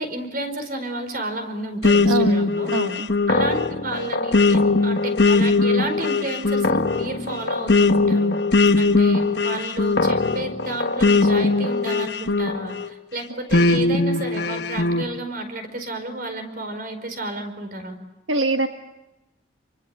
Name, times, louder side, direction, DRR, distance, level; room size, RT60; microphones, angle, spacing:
voice 1, 0.0-2.7 3.3-8.4 8.8-18.0, right 2 dB, 50° right, 7 dB, 4.8 m, -31 dB
sound 1, 1.8-12.9 13.5-15.1, left 3 dB, 60° left, 1.3 m, -20 dB
voice 2, 2.0-3.1 18.3-18.7, right 3 dB, 80° right, 5 dB, 1.3 m, -24 dB
29.5 x 24.5 x 7.8 m, 0.97 s
head